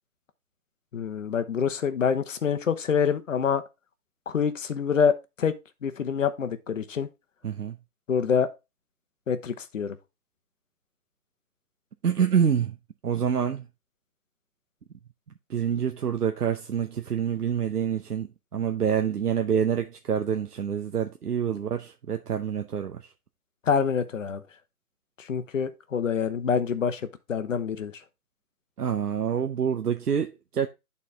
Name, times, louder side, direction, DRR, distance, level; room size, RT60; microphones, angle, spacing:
voice 1, 0.9-3.6 4.3-5.6 5.8-7.1 8.1-8.5 9.3-10.0 23.7-24.4 25.2-28.0, left 6 dB, 55° left, 0.9 m, -26 dB
voice 2, 7.4-7.8 12.0-12.8 13.0-13.7 15.5-23.1 28.8-30.7, right 8 dB, 85° right, 0.8 m, -27 dB
9.4 x 4.2 x 3.5 m
figure-of-eight pair, 150°, 45 cm